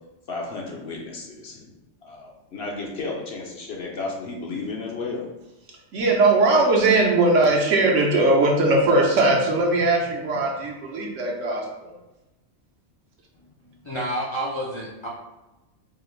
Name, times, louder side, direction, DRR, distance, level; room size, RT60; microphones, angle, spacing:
voice 1, 0.3-1.7 2.0-5.2, left 3 dB, 55° left, -1 dB, 0.9 m, -33 dB
voice 2, 5.9-11.9, right 2 dB, 70° right, -1 dB, 1.1 m, -20 dB
voice 3, 13.8-15.1, right 1 dB, 40° left, -5 dB, 0.4 m, -29 dB
4.6 x 2.5 x 3.1 m, 1.0 s
omnidirectional pair, 1.3 m